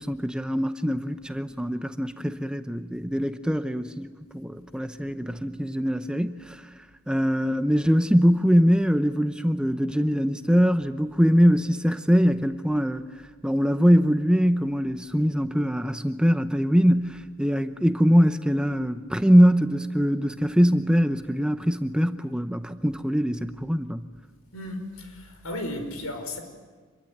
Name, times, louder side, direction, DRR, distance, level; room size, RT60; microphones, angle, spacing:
voice 1, 0.0-6.6 7.1-13.0 13.4-24.1, equal, 5° right, 0.7 m, -22 dB
voice 2, 24.5-26.4, left 1 dB, 80° left, 5.1 m, -34 dB
26.5 x 22.5 x 9.5 m
head